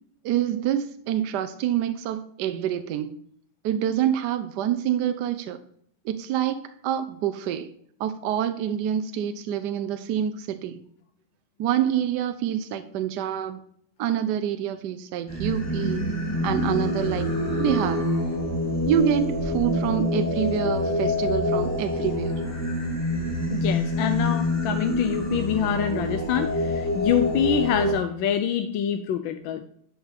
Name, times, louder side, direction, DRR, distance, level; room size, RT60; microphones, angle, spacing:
voice 1, 0.2-3.2 3.6-5.6 6.0-7.7 8.0-10.8 11.6-13.6 14.0-16.1 16.4-17.3 17.6-18.1 18.9-22.4, right 10 dB, 70° right, 9 dB, 1.0 m, -26 dB
Singing, 15.3-27.9, left 1 dB, 10° left, 1.9 m, -26 dB
voice 2, 23.5-29.6, left 9 dB, 70° left, 7 dB, 1.3 m, -26 dB
11.0 x 5.9 x 3.4 m, 0.65 s
omnidirectional pair, 2.3 m